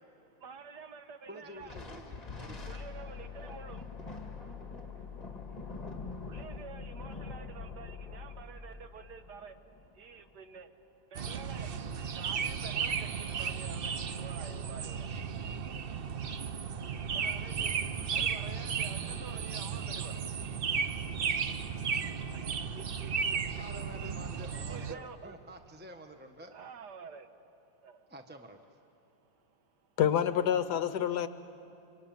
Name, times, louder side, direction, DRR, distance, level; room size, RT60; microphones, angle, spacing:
voice 1, 0.3-1.8 2.7-5.3 6.1-15.5 15.9-20.2 22.3-23.6 24.7-25.4 26.5-27.4 27.8-28.1 29.0-30.0, right 5 dB, 60° right, 8 dB, 1.8 m, -50 dB
voice 2, 1.3-2.6 23.6-26.5 28.1-28.6, right 1 dB, 10° right, 6 dB, 0.5 m, -48 dB
Thunder, 1.6-10.4, left 2 dB, 20° left, 2.1 m, -46 dB
sound 1, 2.5-8.4, left 8 dB, 25° right, 4.1 m, -46 dB
sound 2, 11.1-24.9, right 6 dB, 90° right, 0.5 m, -34 dB
voice 3, 30.0-31.3, left 9 dB, 65° left, 12 dB, 1.2 m, -27 dB
25.5 x 24.5 x 9.2 m, 2.7 s
omnidirectional pair, 2.1 m